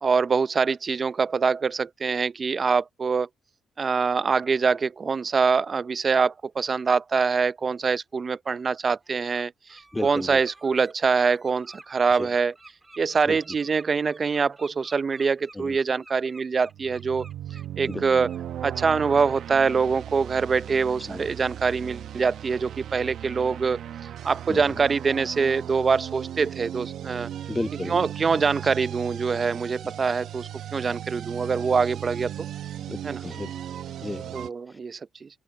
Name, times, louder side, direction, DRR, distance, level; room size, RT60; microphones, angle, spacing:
voice 1, 0.0-3.3 3.8-12.5 13.0-17.3 17.8-18.3 18.6-23.8 24.2-27.3 27.9-32.3 33.0-33.2 34.3-35.3, right 5 dB, 40° right, 0.6 m, -24 dB
Bird, 8.4-8.6 9.0-9.4 9.7-18.4 18.7-18.9 19.3-19.5, right 2 dB, 20° right, 4.6 m, -51 dB
voice 2, 9.9-10.4 12.1-12.3 13.2-13.4 15.5-15.8 17.9-18.1 21.1-21.3 24.5-24.8 27.5-28.0 32.9-33.5 34.0-34.3 34.7-34.8, left 2 dB, 15° left, 0.4 m, -33 dB
sound 1, 16.7-34.5, right 11 dB, 70° right, 0.9 m, -37 dB
open air
cardioid pair, 90°, 0 cm